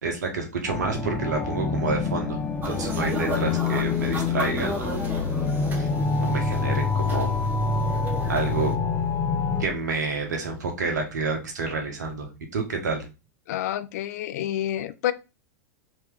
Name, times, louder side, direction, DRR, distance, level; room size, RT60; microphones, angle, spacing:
voice 1, 0.0-2.4 2.6-5.0 5.8-5.9 6.2-7.4 8.3-8.7 9.6-13.0, right 4 dB, 85° right, 1.2 m, -29 dB
sound 1, 0.7-9.7, left 4 dB, 15° left, 0.7 m, -26 dB
sound 2, 2.6-8.8, right 1 dB, 20° right, 0.9 m, -35 dB
voice 2, 13.5-15.1, left 12 dB, 65° left, 0.4 m, -28 dB
3.1 x 2.9 x 3.5 m
hypercardioid pair, 105°, 9 cm